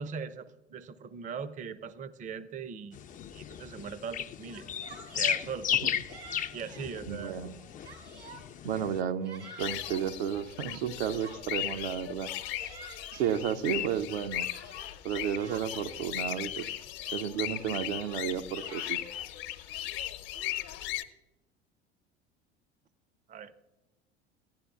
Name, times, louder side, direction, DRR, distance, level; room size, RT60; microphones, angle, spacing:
voice 1, 0.0-3.0 3.3-4.6 5.1-5.7 6.5-7.4 23.3-23.5, right 6 dB, 25° right, 14 dB, 0.5 m, -40 dB
sound 1, 2.9-9.0, left 9 dB, 25° left, 0.4 m, -35 dB
Yell, 4.4-5.4 6.1-6.9 7.4-8.5 9.0-10.1 10.8-11.8 12.3-13.4 13.9-16.0 16.6-16.7 17.0-17.5 18.2-19.3, right 2 dB, 90° right, 3.8 m, -50 dB
voice 2, 7.1-7.6 8.6-12.3 13.1-14.5 15.0-16.8 17.1-19.0, right 9 dB, 65° right, 8 dB, 0.7 m, -32 dB
sound 2, 9.6-21.0, left 13 dB, 60° left, 0.9 m, -37 dB
15.5 x 10.5 x 2.4 m, 1.1 s
figure-of-eight pair, 70°, 34 cm